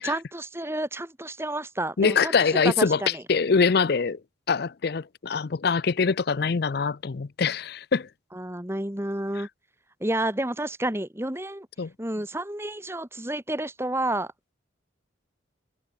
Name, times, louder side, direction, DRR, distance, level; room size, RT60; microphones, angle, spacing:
voice 1, 0.0-2.4 2.6-3.2 8.3-9.5 10.0-11.7 12.0-14.3, right 1 dB, 15° right, 1.8 m, -30 dB
voice 2, 2.0-3.0 3.3-4.2 4.5-8.1 9.4-9.5 11.8-11.9, left 5 dB, 55° left, 0.5 m, -24 dB
head